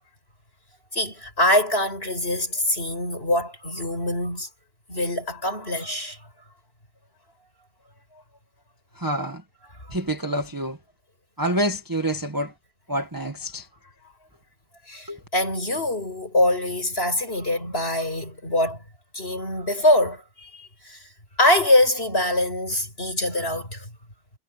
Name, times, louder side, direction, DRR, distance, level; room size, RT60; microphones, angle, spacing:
voice 1, 0.9-4.5 4.9-6.2 9.7-10.0 14.9-18.8 19.1-21.1 21.4-23.9, left 1 dB, 35° left, 6.9 m, -24 dB
voice 2, 9.0-9.4 9.9-10.8 11.4-12.5 12.9-13.7 15.1-15.2, right 1 dB, 10° right, 1.6 m, -27 dB
omnidirectional pair, 1.8 m